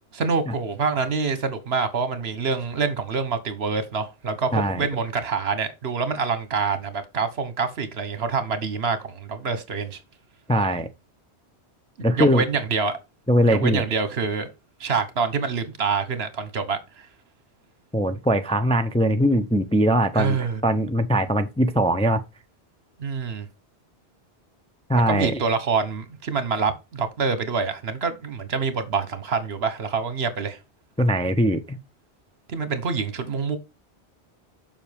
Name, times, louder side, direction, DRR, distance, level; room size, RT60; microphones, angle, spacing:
voice 1, 0.1-10.0 12.2-13.0 13.5-14.5 14.8-17.1 20.1-20.6 23.0-23.5 25.1-30.6 32.5-33.6, right 5 dB, 70° right, 1.3 m, -26 dB
voice 2, 4.5-4.9 10.5-10.9 12.0-12.4 13.3-13.8 17.9-22.2 24.9-25.4 31.0-31.8, equal, 10° left, 0.4 m, -21 dB
7.2 x 5.7 x 3.4 m
omnidirectional pair, 1.1 m